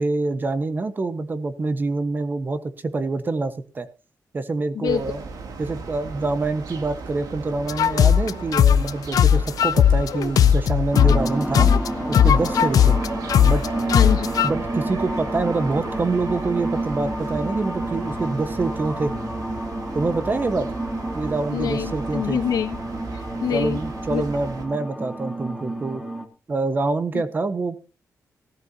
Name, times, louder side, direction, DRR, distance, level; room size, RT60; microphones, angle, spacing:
voice 1, 0.0-3.9 4.3-5.2 5.6-11.7 12.1-13.0 13.4-13.7 14.4-19.1 19.9-20.7 21.1-22.4 23.5-26.0 26.5-27.8, right 3 dB, 30° right, 11 dB, 1.2 m, -26 dB
voice 2, 4.7-5.1 13.9-14.3 21.5-22.8 23.1-23.8 24.1-24.3 27.1-27.2, left 8 dB, 85° left, 7 dB, 1.6 m, -26 dB
sound 1, 4.9-24.7, right 4 dB, 75° right, 2.7 m, -36 dB
sound 2, 7.7-11.3 11.5-14.5, left 9 dB, 70° left, 0.6 m, -17 dB
sound 3, 10.9-26.3, right 1 dB, 5° right, 1.7 m, -30 dB
18.0 x 13.5 x 2.8 m, 0.32 s
wide cardioid pair, 135°, 6 cm